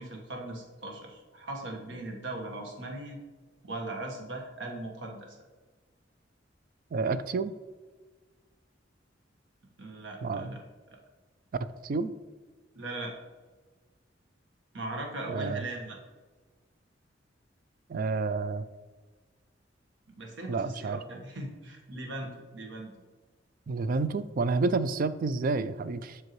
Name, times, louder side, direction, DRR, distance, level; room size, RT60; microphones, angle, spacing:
voice 1, 0.0-3.2 3.6-5.4 9.8-10.6 10.9-11.0 12.7-13.1 14.7-16.0 20.1-22.9, right 2 dB, 80° right, 1 dB, 1.3 m, -39 dB
voice 2, 6.9-7.5 10.2-10.6 11.8-12.1 15.3-15.6 17.9-18.6 20.5-21.0 23.7-26.2, right 4 dB, 50° right, 14 dB, 0.3 m, -29 dB
7.8 x 5.7 x 3.1 m, 1.4 s
head